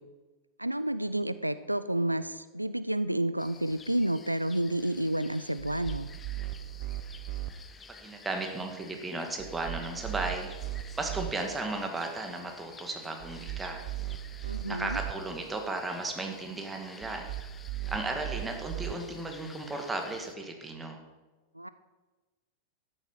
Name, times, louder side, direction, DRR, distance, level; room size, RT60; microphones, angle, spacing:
voice 1, 0.6-6.1 14.5-15.0 21.6-21.7, right 1 dB, 85° right, 14 dB, 0.4 m, -30 dB
sound 1, 3.4-20.4, left 5 dB, 20° left, 0.8 m, -52 dB
sound 2, 5.6-7.5 9.4-11.3 13.2-15.1 17.0-18.9, right 16 dB, 45° right, 1.0 m, -38 dB
voice 2, 8.0-10.5 10.9-13.8 14.6-17.3 17.9-21.0, right 2 dB, 10° right, 3 dB, 2.0 m, -35 dB
13.0 x 10.0 x 5.5 m, 1.2 s
figure-of-eight pair, 90°, 0 cm